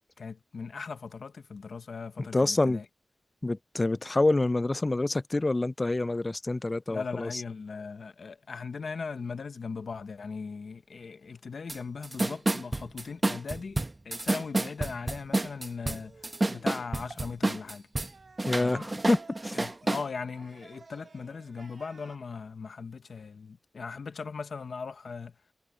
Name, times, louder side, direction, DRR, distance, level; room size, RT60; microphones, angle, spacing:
voice 1, 0.2-2.9 6.9-13.8 14.0-16.1 16.5-17.8 18.6-18.9 19.5-25.3, left 5 dB, 80° left, 1.1 m, -39 dB
voice 2, 2.3-2.8 3.4-7.3 18.5-19.2 19.4-19.5, left 2 dB, 30° left, 0.5 m, -26 dB
sound 1, 11.7-11.8 12.0-18.1 18.4-20.1, right 2 dB, 30° right, 0.9 m, -29 dB
sound 2, 15.9-16.7 18.0-22.2, right 4 dB, 65° right, 3.3 m, -53 dB
sound 3, 17.1-17.2 19.0-19.3, right 3 dB, 45° right, 5.7 m, -51 dB
wide cardioid pair, 80°, 0 cm